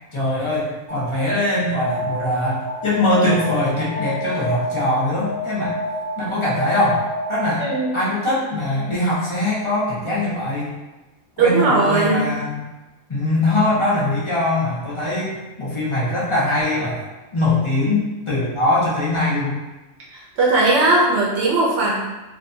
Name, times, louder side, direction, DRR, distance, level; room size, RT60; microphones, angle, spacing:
voice 1, 0.1-5.7 6.2-7.6 7.9-10.7 11.4-12.6 13.1-17.1 17.3-19.6, left 1 dB, 40° left, -7 dB, 0.4 m, -22 dB
Alarm, 0.9-8.0, left 1 dB, 25° right, 0.5 m, -29 dB
voice 2, 7.6-7.9 11.4-12.3 20.1-22.0, right 3 dB, 65° right, -4 dB, 0.8 m, -18 dB
2.6 x 2.2 x 2.6 m, 1.1 s
omnidirectional pair, 1.3 m